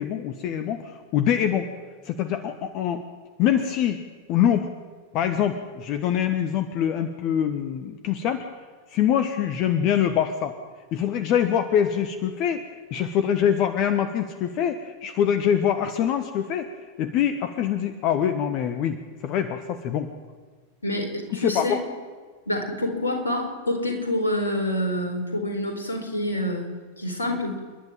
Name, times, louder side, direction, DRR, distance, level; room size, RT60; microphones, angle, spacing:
voice 1, 0.0-1.7 2.0-3.0 3.4-4.0 4.3-4.7 5.1-8.4 8.9-10.5 10.9-16.7 17.0-20.1 21.3-21.8, left 9 dB, 40° left, 9 dB, 1.3 m, -24 dB
voice 2, 20.8-21.7 22.5-26.7 27.0-27.6, left 1 dB, 75° left, 4 dB, 4.3 m, -27 dB
28.5 x 11.0 x 9.1 m, 1.5 s
figure-of-eight pair, 90°, 0 cm